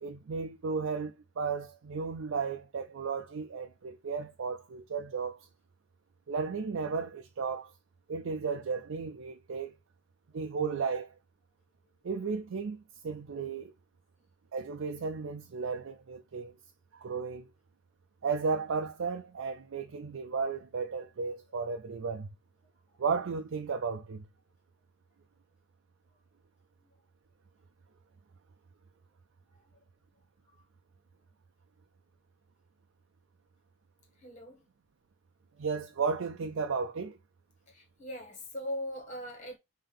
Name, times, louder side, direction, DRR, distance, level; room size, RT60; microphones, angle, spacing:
voice 1, 0.0-5.4 6.3-7.7 8.1-9.7 10.3-11.1 12.0-13.7 14.5-16.5 17.0-17.5 18.2-22.3 23.0-24.2 35.6-37.2, right 5 dB, 85° right, 0.5 m, -34 dB
voice 2, 34.2-34.6 37.7-39.6, equal, 35° left, 1.5 m, -40 dB
5.4 x 2.8 x 3.4 m
head